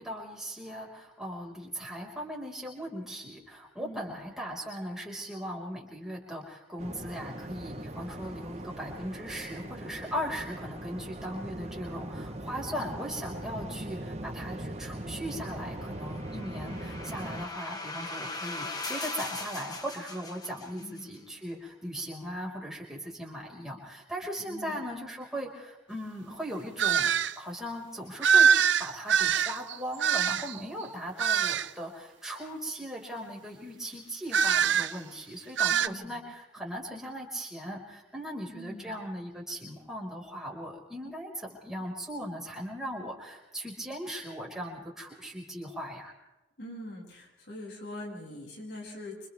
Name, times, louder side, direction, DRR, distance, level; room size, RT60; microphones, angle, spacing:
voice 1, 0.0-28.5 28.8-46.1, equal, 5° right, -3 dB, 5.5 m, -38 dB
voice 2, 3.8-4.1 20.8-21.1 24.5-24.8 35.7-36.2 38.5-39.0 46.6-49.3, left 1 dB, 70° left, -2 dB, 7.9 m, -43 dB
Waves surf, 6.8-17.5, right 1 dB, 35° right, 1.2 m, -40 dB
sound 1, 15.7-21.0, left 3 dB, 20° left, 1.7 m, -40 dB
sound 2, 26.8-27.3 28.2-30.6 31.2-31.7 34.3-35.0 35.6-35.9, right 7 dB, 80° right, 0.7 m, -24 dB
30.0 x 27.0 x 3.6 m, 0.97 s
head